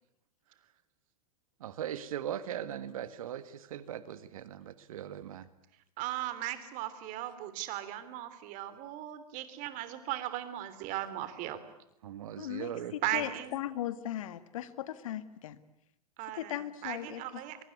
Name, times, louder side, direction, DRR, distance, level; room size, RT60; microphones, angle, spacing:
voice 1, 1.6-5.5 12.0-12.9, right 10 dB, 60° right, 1.8 m, -39 dB
voice 2, 6.0-11.6 13.0-13.6 16.2-17.6, right 14 dB, 40° right, 3.4 m, -37 dB
voice 3, 12.4-15.6 16.4-17.4, left 12 dB, 60° left, 1.9 m, -38 dB
24.0 x 23.0 x 9.6 m
figure-of-eight pair, 100°, 20 cm